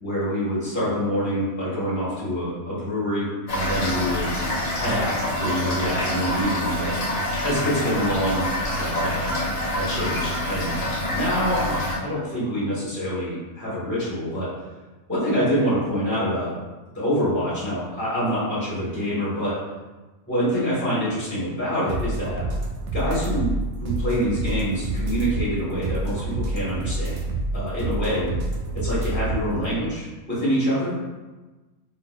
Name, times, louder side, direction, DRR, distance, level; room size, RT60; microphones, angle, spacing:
voice 1, 0.0-4.3 4.8-6.9 7.4-8.5 8.8-9.3 9.8-10.9 11.1-14.5 15.1-16.5 16.9-19.6 20.3-22.4 22.9-27.2 27.5-28.3 28.7-31.0, equal, 10° left, -10 dB, 1.2 m, -26 dB
Toilet flush / Fill (with liquid), 3.5-12.0, left 1 dB, 85° left, 1.3 m, -26 dB
sound 1, 21.9-29.6, right 2 dB, 70° right, 0.9 m, -28 dB
3.9 x 2.7 x 2.2 m, 1.2 s
omnidirectional pair, 1.3 m